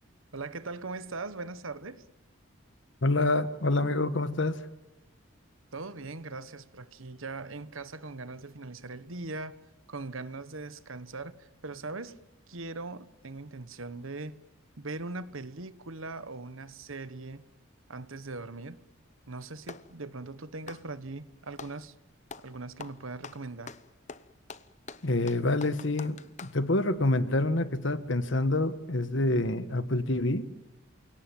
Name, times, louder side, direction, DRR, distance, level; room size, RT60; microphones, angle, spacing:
voice 1, 0.3-2.0 5.7-9.6 9.9-12.1 12.5-14.4 14.8-17.4 17.9-18.8 19.3-21.9 22.4-23.7, right 3 dB, 75° right, 1.3 m, -40 dB
voice 2, 3.0-4.6 25.0-30.4, left 2 dB, 60° left, 1.4 m, -27 dB
Clapping, 19.0-19.9 20.6-21.8 22.3-22.5 22.8-26.6, left 5 dB, 35° left, 0.9 m, -45 dB
29.0 x 18.0 x 9.2 m
head